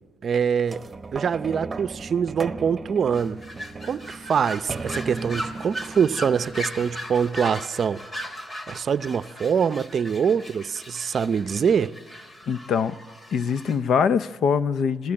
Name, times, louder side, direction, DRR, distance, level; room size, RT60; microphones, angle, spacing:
voice 1, 0.2-0.8 1.1-3.4 3.8-8.0 8.7-11.9, right 7 dB, 50° right, 0.6 m, -24 dB
sound 1, 0.7-7.4 8.1-8.2, right 3 dB, 25° right, 1.1 m, -37 dB
sound 2, 3.1-13.8, equal, 30° left, 3.0 m, -38 dB
voice 2, 12.5-13.0 13.3-15.1, left 6 dB, 65° left, 0.7 m, -23 dB
26.0 x 15.5 x 8.8 m
cardioid pair, 90°, 0 cm